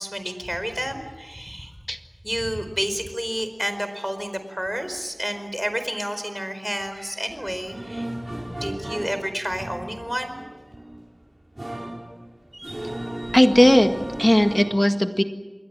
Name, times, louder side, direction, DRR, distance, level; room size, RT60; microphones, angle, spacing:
voice 1, 0.0-1.7 2.2-8.1 8.6-10.4, equal, 5° right, 9 dB, 4.5 m, -30 dB
sound 1, 7.4-14.7, right 1 dB, 45° right, 5.2 m, -35 dB
voice 2, 13.3-15.2, equal, 20° left, 7 dB, 1.7 m, -17 dB
28.0 x 21.5 x 7.6 m, 1.3 s
wide cardioid pair, 40°, 0 cm